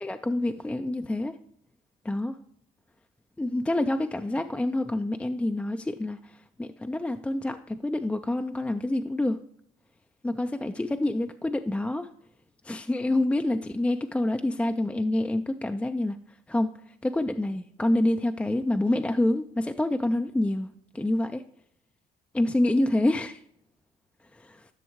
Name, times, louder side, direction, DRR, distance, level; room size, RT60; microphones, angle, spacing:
voice 1, 0.0-1.4 2.0-2.4 3.4-9.4 10.2-12.1 12.6-16.2 16.5-16.7 17.0-21.4 22.3-23.4 24.3-24.7, left 1 dB, 5° left, 6 dB, 0.3 m, -27 dB
11.5 x 6.2 x 3.1 m, 0.70 s
cardioid pair, 110°, 17 cm